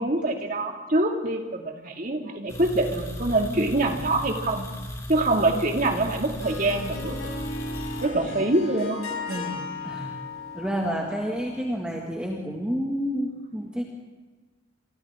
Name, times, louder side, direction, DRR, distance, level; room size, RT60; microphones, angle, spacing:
voice 1, 0.0-4.7 5.1-7.2 8.0-9.0 9.3-9.6, right 2 dB, 40° right, 2 dB, 2.3 m, -25 dB
sound 1, 2.5-8.1, equal, 15° left, 2.5 m, -36 dB
Harp, 6.0-11.8, left 3 dB, 80° left, 4.6 m, -36 dB
voice 2, 8.1-8.5 9.8-10.2 10.5-13.8, equal, 5° right, -2 dB, 2.0 m, -29 dB
28.0 x 25.5 x 3.7 m, 1.3 s
head